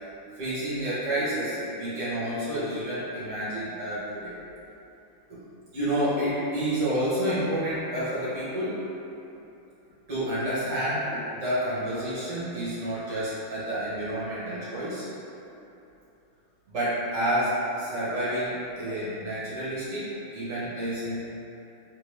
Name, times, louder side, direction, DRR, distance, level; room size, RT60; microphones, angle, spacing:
voice 1, 0.4-4.3 5.3-5.4 5.7-8.9 10.1-15.1 16.7-20.1 20.3-21.2, right 1 dB, 50° right, -11 dB, 1.0 m, -29 dB
3.3 x 2.6 x 3.2 m, 2.9 s
omnidirectional pair, 2.4 m